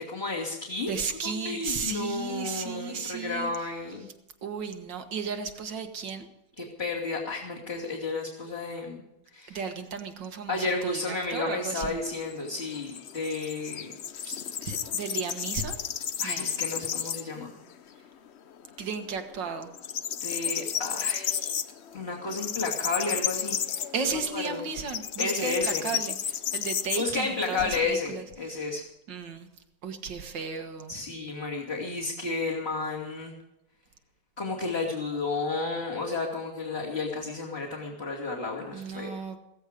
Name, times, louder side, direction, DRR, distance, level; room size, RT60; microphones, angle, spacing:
voice 1, 0.0-0.9 1.2-4.1 6.6-9.0 9.3-9.6 10.5-13.9 14.2-14.4 16.2-17.5 20.2-21.5 21.9-23.8 24.3-24.7 25.2-25.9 27.0-28.8 30.9-33.3 34.4-39.1, left 3 dB, 30° left, -5 dB, 2.9 m, -32 dB
voice 2, 0.9-3.5 4.4-6.3 9.5-12.0 14.6-15.8 16.2-16.5 18.8-19.7 23.9-28.8 29.1-29.5 29.8-30.9 38.7-39.4, right 5 dB, 70° right, 6 dB, 2.2 m, -34 dB
sound 1, 11.5-17.4 17.8-17.9 18.3-19.1 19.3-27.8, left 9 dB, 65° left, 0.6 m, -33 dB
16.5 x 15.5 x 5.1 m, 0.86 s
omnidirectional pair, 2.1 m